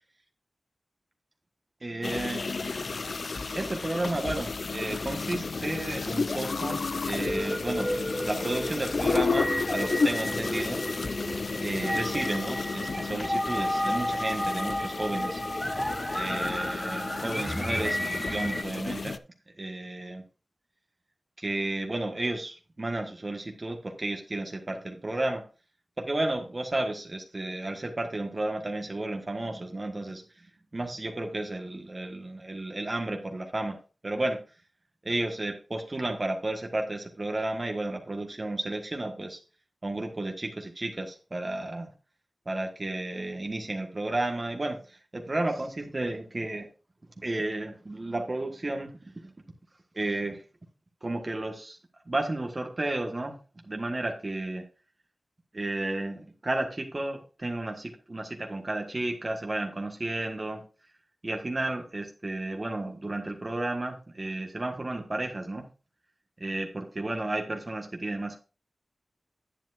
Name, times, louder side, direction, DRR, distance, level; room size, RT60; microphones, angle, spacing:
voice 1, 1.8-2.4 3.5-10.8 11.6-15.4 16.1-19.2 19.6-20.2 21.4-25.4 26.0-30.5 30.7-33.8 34.0-34.4 35.0-39.4 39.8-41.9 42.4-46.7 47.2-48.9 49.2-49.3 49.9-50.4 51.0-51.8 52.1-53.3 53.6-54.6 55.5-60.6 61.2-65.6 66.4-68.4, right 2 dB, 40° right, 3 dB, 1.5 m, -32 dB
sound 1, 2.0-19.2, left 4 dB, 65° left, 0.5 m, -32 dB
sound 2, 7.2-18.6, left 1 dB, 10° left, 0.8 m, -32 dB
10.0 x 9.0 x 2.6 m, 0.33 s
wide cardioid pair, 60°, 0 cm